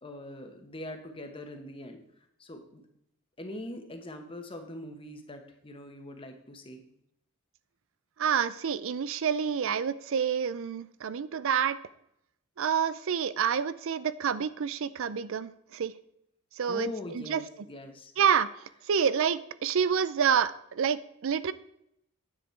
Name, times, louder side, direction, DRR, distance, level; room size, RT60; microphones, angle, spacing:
voice 1, 0.0-2.0 2.4-2.8 3.4-6.8 16.7-18.1, left 1 dB, 25° left, 5 dB, 1.2 m, -42 dB
voice 2, 8.2-11.8 12.6-15.9 16.6-17.4 18.2-21.5, right 7 dB, 65° right, 16 dB, 0.5 m, -28 dB
9.9 x 7.4 x 4.5 m, 0.76 s
head